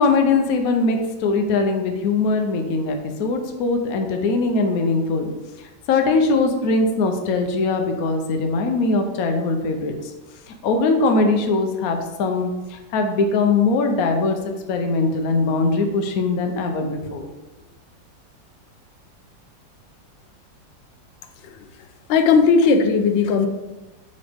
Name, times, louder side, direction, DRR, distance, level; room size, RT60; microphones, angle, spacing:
voice 1, 0.0-5.3 5.9-10.1 10.6-14.4 14.7-17.3, left 3 dB, 60° left, 4 dB, 1.1 m, -21 dB
voice 2, 21.4-23.5, left 5 dB, 85° left, 6 dB, 1.5 m, -18 dB
6.7 x 5.4 x 3.5 m, 1.1 s
omnidirectional pair, 2.0 m